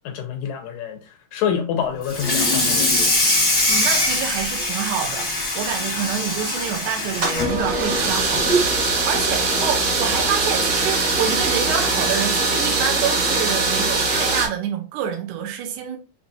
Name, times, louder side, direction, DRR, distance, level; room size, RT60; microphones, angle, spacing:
voice 1, 0.1-1.0 1.3-3.2, left 8 dB, 80° left, 1.7 m, -27 dB
Water tap faucet / Sink (filling or washing), 2.0-8.7 9.1-9.3 9.7-9.8 10.2-10.3 11.4-11.5 12.0-12.2, left 1 dB, 55° left, 0.7 m, -22 dB
voice 2, 3.7-16.0, right 9 dB, 75° right, 1.8 m, -27 dB
sound 1, 7.2-14.5, right 3 dB, 50° right, 1.7 m, -21 dB
5.9 x 2.8 x 2.7 m
omnidirectional pair, 4.0 m